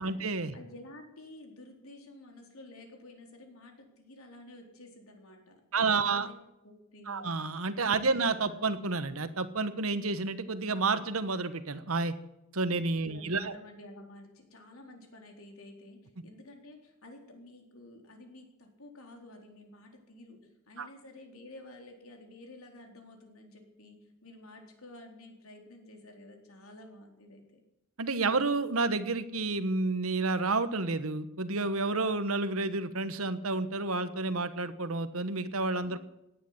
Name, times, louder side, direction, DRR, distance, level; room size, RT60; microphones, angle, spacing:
voice 1, 0.0-0.5 5.7-6.3 7.1-12.1 12.5-13.6 20.8-20.9 28.0-36.0, right 3 dB, 80° right, 12 dB, 1.3 m, -30 dB
voice 2, 0.5-6.4 6.6-7.3 13.0-20.4 20.7-27.6 35.9-36.0, left 1 dB, 85° left, 3 dB, 4.0 m, -51 dB
17.5 x 10.0 x 8.0 m, 0.88 s
head